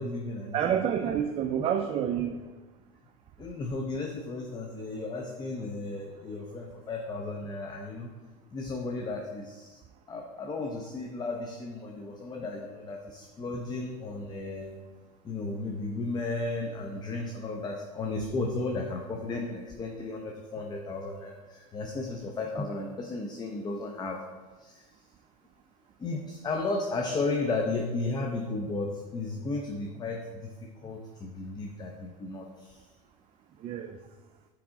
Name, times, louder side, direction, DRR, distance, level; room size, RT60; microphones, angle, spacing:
voice 1, 0.0-0.6 1.0-1.1 3.4-8.1 8.5-9.8 10.1-14.8 15.2-24.2 24.6-24.8 26.0-30.5 30.8-32.9, left 3 dB, 20° left, 2 dB, 0.6 m, -34 dB
voice 2, 0.5-2.4 33.6-34.0, right 9 dB, 30° right, 6 dB, 0.4 m, -28 dB
6.0 x 4.8 x 3.7 m, 1.3 s
hypercardioid pair, 100°, 20 cm